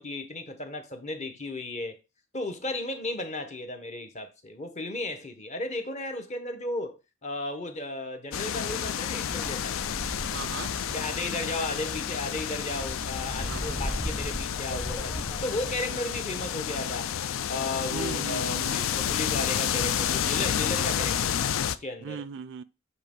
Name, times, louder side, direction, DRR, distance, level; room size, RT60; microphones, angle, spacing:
voice 1, 0.0-2.0 2.3-9.8 10.9-17.1 17.5-22.2, left 2 dB, 35° left, 1.1 m, -35 dB
sound 1, 8.3-21.8, left 9 dB, 70° left, 0.4 m, -30 dB
Wind, 9.2-15.8, equal, 10° left, 0.9 m, -38 dB
voice 2, 10.3-10.7 13.4-14.0 15.9-16.0 17.9-18.8 22.0-22.6, right 6 dB, 60° right, 0.4 m, -38 dB
7.7 x 3.1 x 5.2 m
head